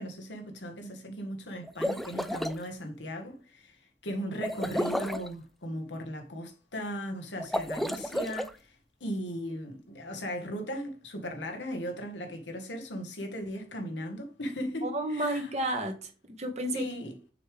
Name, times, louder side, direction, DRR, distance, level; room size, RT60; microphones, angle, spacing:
voice 1, 0.0-8.7 9.0-15.5 16.7-17.2, equal, 90° left, 1.7 m, -37 dB
sound 1, 1.6-2.6 4.4-5.3 7.4-8.5, equal, ahead, 0.4 m, -32 dB
voice 2, 14.8-16.9, right 1 dB, 40° right, 1.6 m, -32 dB
6.9 x 5.3 x 3.4 m
head